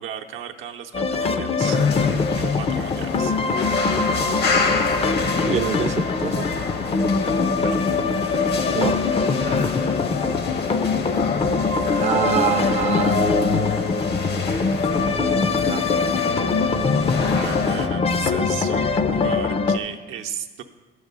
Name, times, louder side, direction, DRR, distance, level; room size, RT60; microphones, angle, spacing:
voice 1, 0.0-1.8 2.4-3.4 7.6-7.9 9.4-9.7 17.3-20.6, right 9 dB, 85° right, 3 dB, 0.7 m, -35 dB
sound 1, 0.9-19.8, left 4 dB, 30° left, 0.5 m, -23 dB
sound 2, 1.6-17.9, left 4 dB, 55° left, 0.9 m, -27 dB
voice 2, 5.4-6.5 8.7-9.0 12.0-13.2 14.4-14.5 14.9-15.8, right 8 dB, 35° right, 9 dB, 0.4 m, -26 dB
10.0 x 4.8 x 6.7 m, 1.3 s
cardioid pair, 90°, 20 cm